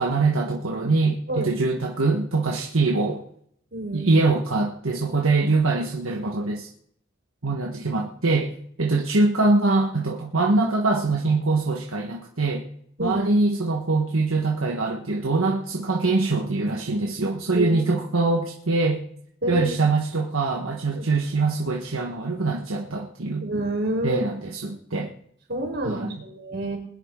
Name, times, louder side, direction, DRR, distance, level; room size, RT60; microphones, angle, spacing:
voice 1, 0.0-3.2 3.9-6.7 7.4-8.5 8.8-12.7 13.0-19.0 19.5-23.5 24.0-25.1 25.8-26.2, right 3 dB, 80° right, 0 dB, 1.3 m, -23 dB
voice 2, 3.7-4.1 13.0-13.3 17.5-17.9 19.4-19.8 20.9-21.1 23.4-24.2 25.5-26.8, right 1 dB, 55° right, 0 dB, 4.2 m, -28 dB
21.0 x 10.5 x 3.7 m, 0.67 s
head